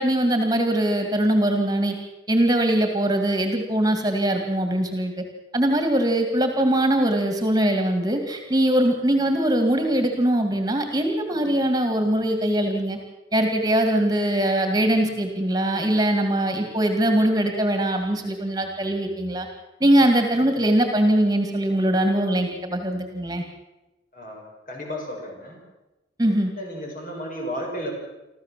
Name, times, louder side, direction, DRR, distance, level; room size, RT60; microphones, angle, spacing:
voice 1, 0.0-1.9 2.3-5.1 5.5-13.0 13.3-19.5 19.8-23.4 26.2-26.5, right 1 dB, 20° right, 5 dB, 2.3 m, -22 dB
voice 2, 24.1-25.6 26.6-27.9, equal, 45° left, 1 dB, 6.4 m, -33 dB
25.5 x 14.5 x 7.6 m, 1.0 s
head